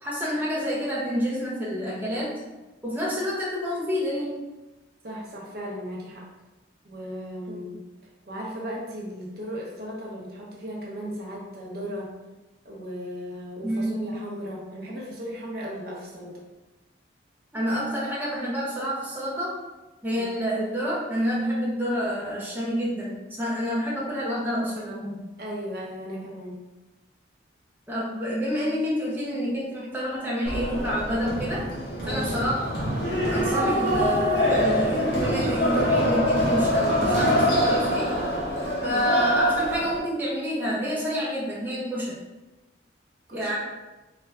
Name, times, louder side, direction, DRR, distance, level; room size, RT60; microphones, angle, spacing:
voice 1, 0.0-2.4 2.8-4.4 7.5-7.6 13.6-14.2 17.5-19.6 20.0-25.3 27.9-31.7 32.1-32.8 33.3-38.1 38.8-42.2 43.3-43.5, equal, 10° right, -7 dB, 0.5 m, -28 dB
voice 2, 5.0-6.2 6.8-7.8 8.3-12.1 12.6-16.4 20.2-20.3 25.4-26.6 32.0-32.6 38.8-39.0 43.3-43.5, equal, 50° right, -3 dB, 0.7 m, -36 dB
sound 1, 30.5-40.0, equal, 55° left, 1.0 m, -24 dB
3.3 x 2.1 x 3.4 m, 1.1 s
head